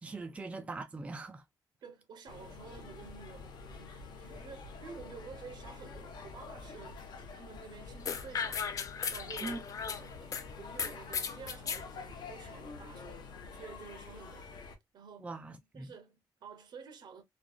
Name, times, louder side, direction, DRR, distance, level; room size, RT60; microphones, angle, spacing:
voice 1, 0.0-1.4 9.4-9.6 15.2-15.9, right 3 dB, 15° right, 0.4 m, -41 dB
voice 2, 1.8-7.1 7.3-10.3 10.6-14.5 14.9-17.2, right 6 dB, 75° right, 0.9 m, -51 dB
sound 1, 2.3-14.8, left 4 dB, 80° left, 0.7 m, -48 dB
sound 2, 2.5-14.1 14.4-14.5 14.7-14.8, left 2 dB, 5° left, 1.2 m, -56 dB
sound 3, 8.0-10.4 10.8-11.8, left 6 dB, 50° left, 0.4 m, -36 dB
3.1 x 2.3 x 2.3 m
wide cardioid pair, 150°, 8 cm